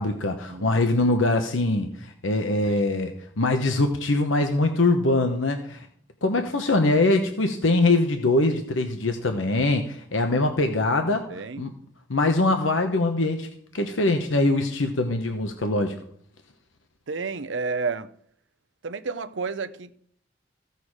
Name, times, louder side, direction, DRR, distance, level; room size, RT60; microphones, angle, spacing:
voice 1, 0.0-5.9 6.2-11.3 11.6-11.7 12.1-13.5 13.7-15.9, left 2 dB, 90° left, 1.0 m, -23 dB
voice 2, 11.3-11.7 17.1-18.1 18.8-19.9, right 4 dB, 70° right, 0.7 m, -31 dB
15.0 x 6.8 x 4.8 m
head